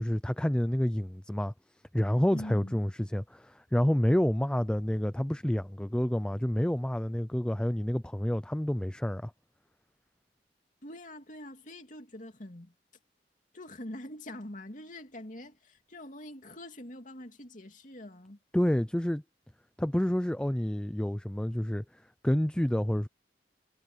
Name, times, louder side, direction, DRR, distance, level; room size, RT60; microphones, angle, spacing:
voice 1, 0.0-1.5 1.9-9.3 18.5-19.2 19.8-21.8 22.2-23.1, equal, 5° left, 0.4 m, -28 dB
voice 2, 2.3-2.8 10.8-12.7 13.5-18.4, left 1 dB, 45° left, 2.8 m, -44 dB
head